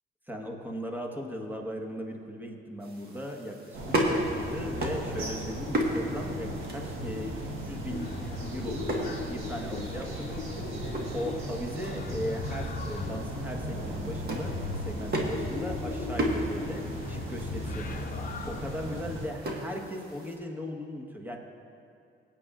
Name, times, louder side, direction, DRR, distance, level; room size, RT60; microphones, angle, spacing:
voice 1, 0.3-7.4 7.6-9.0 9.3-14.6 14.8-21.4, equal, 10° right, 1 dB, 1.3 m, -38 dB
sound 1, 2.8-20.4, right 1 dB, 55° right, 1.5 m, -36 dB
sound 2, 3.7-19.3, right 1 dB, 85° right, 1.5 m, -37 dB
sound 3, 7.9-19.0, left 4 dB, 45° left, 0.8 m, -40 dB
17.5 x 8.8 x 2.5 m, 2.4 s
cardioid pair, 90°, 20 cm